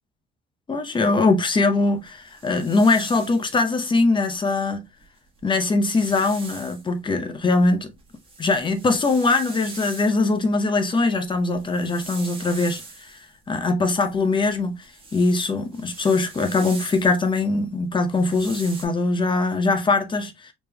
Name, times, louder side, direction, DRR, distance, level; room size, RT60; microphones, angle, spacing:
voice 1, 0.7-4.9 5.4-7.9 8.4-20.5, left 3 dB, 25° left, 0.7 m, -22 dB
sound 1, 2.0-3.6 5.0-5.1 5.4-6.9 7.4-10.4 11.4-13.3 13.9-17.3 18.0-18.9, right 3 dB, 25° right, 1.4 m, -42 dB
5.1 x 3.1 x 2.2 m
cardioid pair, 140°, 20 cm